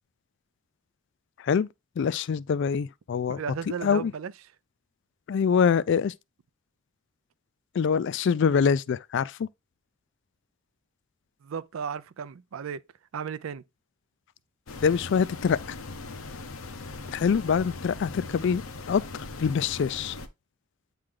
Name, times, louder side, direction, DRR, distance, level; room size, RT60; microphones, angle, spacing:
voice 1, 2.0-3.4 3.7-4.1 5.3-6.1 7.7-9.5 14.8-15.8 17.1-20.2, left 6 dB, 55° left, 0.3 m, -25 dB
voice 2, 3.3-4.3 11.4-12.8 13.1-13.6, right 7 dB, 70° right, 0.4 m, -35 dB
sound 1, 14.7-20.3, left 3 dB, 85° left, 0.8 m, -39 dB
8.6 x 3.3 x 3.7 m
head